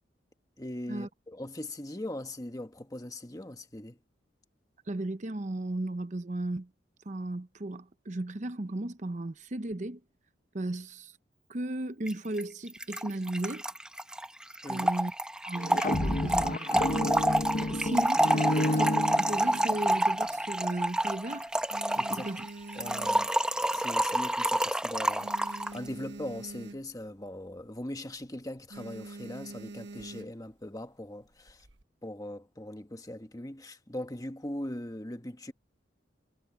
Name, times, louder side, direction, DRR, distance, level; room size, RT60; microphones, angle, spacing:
voice 1, 0.6-4.0 14.6-14.9 21.9-22.4 22.7-23.3 23.7-31.7 32.0-35.5, left 1 dB, 20° left, 1.4 m, -40 dB
voice 2, 4.9-6.7 7.1-10.0 10.5-11.2 11.5-13.6 14.7-15.1 15.4-17.1 17.6-21.5 22.1-22.4, right 2 dB, 40° right, 0.8 m, -35 dB
Trickle dribble / Fill (with liquid), 12.1-12.2 12.4-12.5 12.7-25.8, right 1 dB, 5° right, 0.8 m, -28 dB
sound 1, 15.6-19.8, left 1 dB, 45° left, 1.0 m, -30 dB
sound 2, 18.2-20.5 20.8-21.2 21.5-23.7 24.2-24.3 24.5-24.6 24.9-27.1 27.4-27.7 28.0-28.3 28.7-30.5 31.3-31.8, right 2 dB, 75° right, 1.3 m, -45 dB
head